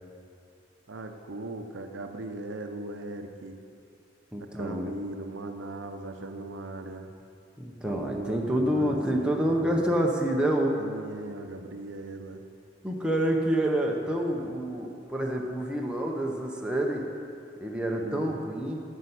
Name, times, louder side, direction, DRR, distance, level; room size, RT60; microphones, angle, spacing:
voice 1, 0.9-3.6 4.4-7.1 7.8-10.0 10.8-12.4 18.0-18.4, right 2 dB, 70° right, 6 dB, 0.7 m, -39 dB
voice 2, 4.3-4.9 7.6-10.8 12.8-17.1 17.6-18.8, right 1 dB, 5° right, -1 dB, 0.7 m, -27 dB
10.0 x 5.5 x 8.1 m, 2.5 s
head